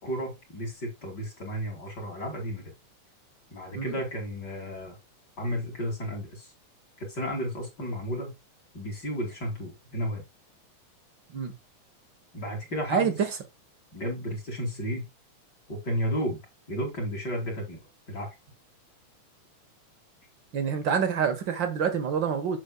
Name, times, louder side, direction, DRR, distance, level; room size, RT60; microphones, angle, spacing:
voice 1, 0.0-2.7 3.5-5.0 5.4-6.5 7.0-8.3 8.7-10.2 12.3-13.2 13.9-15.1 15.7-16.4 16.7-17.8 18.1-18.3, equal, 35° left, 2.6 m, -33 dB
voice 2, 20.5-22.6, right 7 dB, 60° right, 1.2 m, -27 dB
8.3 x 6.7 x 2.2 m
omnidirectional pair, 3.6 m